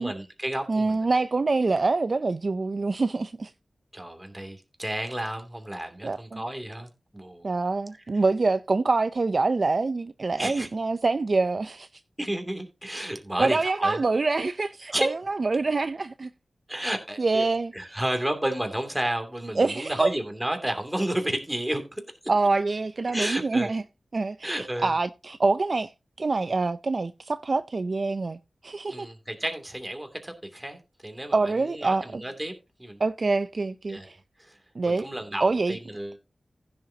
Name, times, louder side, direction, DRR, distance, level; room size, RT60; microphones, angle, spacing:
voice 1, 0.0-1.1 3.9-7.5 10.4-10.7 12.2-14.0 14.9-15.1 16.7-22.0 23.1-23.7 24.4-24.9 28.9-32.5 32.8-33.0 33.9-34.1 34.4-34.6 34.8-36.2, right 1 dB, 10° right, 2.7 m, -32 dB
voice 2, 0.7-3.5 6.0-6.4 7.4-11.9 13.4-16.3 17.2-18.0 19.6-20.1 22.3-23.8 24.1-25.9 26.2-28.4 28.6-29.1 31.3-32.2 33.0-34.2 34.8-35.1 35.4-35.8, right 3 dB, 50° right, 0.5 m, -25 dB
15.5 x 7.0 x 2.8 m
wide cardioid pair, 100°, 0 cm